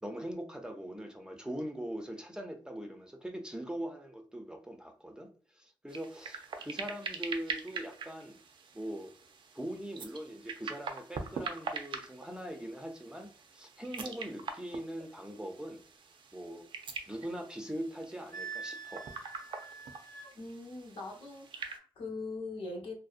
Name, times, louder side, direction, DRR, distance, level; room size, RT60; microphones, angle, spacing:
voice 1, 0.0-8.4 8.7-9.1 9.5-15.8 16.3-16.7 17.1-19.1, right 1 dB, 10° right, 0.4 m, -41 dB
sound 1, 5.9-21.8, right 5 dB, 70° right, 0.4 m, -44 dB
Wind instrument woodwind instrument, 18.3-20.3, right 5 dB, 40° left, 0.5 m, -44 dB
voice 2, 20.3-22.9, left 3 dB, 75° left, 0.8 m, -41 dB
2.6 x 2.0 x 2.4 m
cardioid pair, 85°, 9 cm